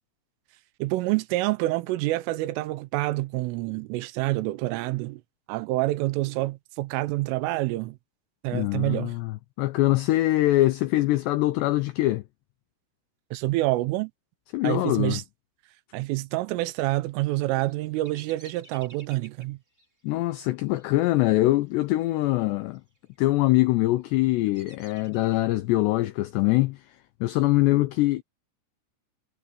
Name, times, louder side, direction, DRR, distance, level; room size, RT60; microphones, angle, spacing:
voice 1, 0.8-5.2 5.5-8.0 8.4-9.1 13.3-14.1 14.6-15.2 15.9-19.6, right 18 dB, 85° right, 3.4 m, -27 dB
voice 2, 8.5-12.2 14.5-15.2 20.0-22.8 23.2-26.8 27.2-28.2, left 17 dB, 85° left, 2.4 m, -23 dB
Bird vocalization bird call bird song, 17.3-22.3 22.6-23.2 23.7-25.7, right 1 dB, 15° right, 5.7 m, -55 dB
omnidirectional pair, 5.8 m